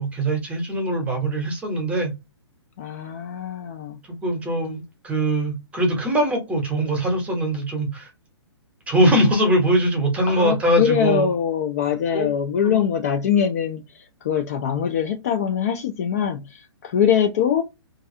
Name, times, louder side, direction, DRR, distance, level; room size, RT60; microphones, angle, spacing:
voice 1, 0.0-2.1 4.2-8.1 8.9-11.3 12.1-12.3 12.6-12.8, right 1 dB, 10° right, 0.8 m, -22 dB
voice 2, 2.8-4.0 10.3-17.6, left 8 dB, 35° left, 0.3 m, -23 dB
2.5 x 2.3 x 2.6 m
figure-of-eight pair, 120°, 15 cm